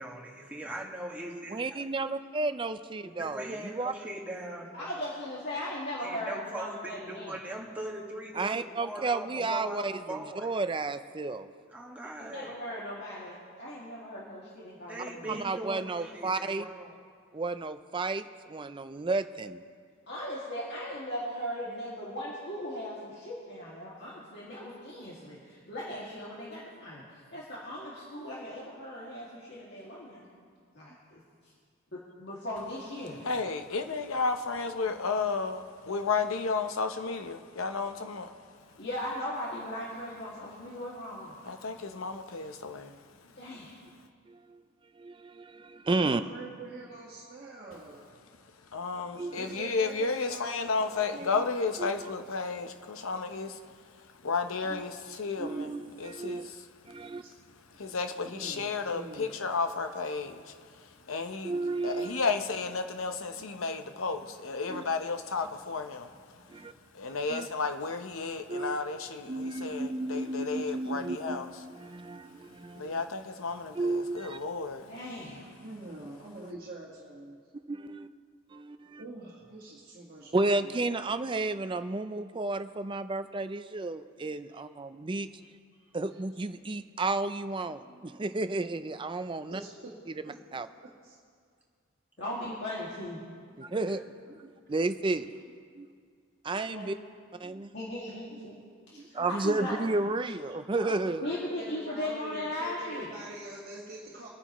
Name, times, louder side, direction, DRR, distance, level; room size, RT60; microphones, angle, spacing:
voice 1, 0.0-1.8 3.0-4.7 6.0-10.5 11.7-12.6 14.8-16.9 92.2-92.6 93.7-94.1, right 1 dB, 5° right, -4 dB, 1.7 m, -41 dB
voice 2, 1.5-3.9 8.4-11.5 15.3-16.6 17.3-19.6 44.3-44.6 45.0-46.2 49.2-49.6 51.8-52.1 54.7-54.8 55.4-56.5 56.9-57.2 61.4-62.1 64.7-64.8 66.5-66.7 67.3-67.5 68.5-68.8 69.3-73.0 73.7-74.4 77.7-78.1 78.5-79.0 80.3-85.3 85.9-89.6 90.2-90.7 93.6-94.0 94.3-95.3 95.8-95.9 96.4-97.0 97.4-97.7 98.9-101.2, right 3 dB, 25° right, 11 dB, 0.4 m, -32 dB
voice 3, 4.7-7.3 12.2-15.4 20.1-30.3 30.7-31.2 32.2-33.2 38.8-41.3 43.4-43.7 49.5-49.6 74.9-75.5 92.2-93.2 96.7-96.9 97.7-98.6 99.0-99.8 101.2-103.1, left 1 dB, 55° left, -7 dB, 2.3 m, -38 dB
voice 4, 33.2-38.3 41.4-43.0 48.7-53.6 54.2-56.6 57.8-60.5 60.8-61.6 61.8-66.1 66.9-71.5 72.7-74.9, left 4 dB, 80° left, 7 dB, 0.8 m, -33 dB
voice 5, 46.0-48.0 49.3-51.5 57.0-57.3 57.7-57.9 58.2-59.4 63.3-63.6 66.5-66.7 75.6-77.4 79.0-80.7 84.5-84.6 89.5-89.6 90.2-91.2 93.6-93.9 100.8-104.3, right 2 dB, 45° right, -6 dB, 1.7 m, -45 dB
25.5 x 9.9 x 3.1 m, 2.1 s
head